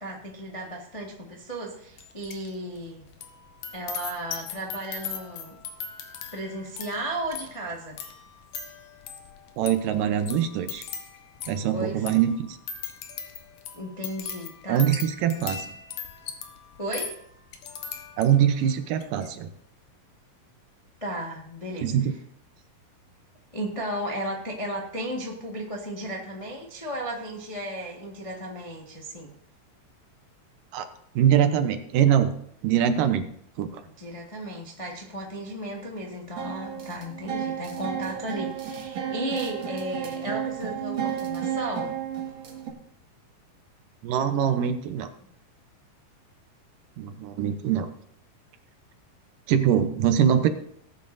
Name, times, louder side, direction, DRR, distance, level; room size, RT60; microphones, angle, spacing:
voice 1, 0.0-3.1 3.7-5.6 6.3-8.0 11.5-12.0 13.7-14.9 16.8-17.1 21.0-21.9 23.5-29.3 34.0-42.0, right 1 dB, 35° left, -2 dB, 0.5 m, -34 dB
sound 1, 2.0-2.5 2.8-18.5 18.9-19.3, left 7 dB, 80° left, 2.8 m, -39 dB
voice 2, 9.6-10.8 11.5-12.6 14.7-15.7 18.2-19.5 21.8-22.1 30.7-30.9 31.2-32.4 32.6-33.2 33.6-33.8 44.0-45.1 47.0-47.9 49.5-50.5, right 9 dB, 75° right, 8 dB, 2.4 m, -23 dB
sound 2, 36.4-42.7, right 9 dB, 55° right, 2.4 m, -32 dB
19.0 x 9.3 x 2.7 m, 0.68 s
omnidirectional pair, 4.0 m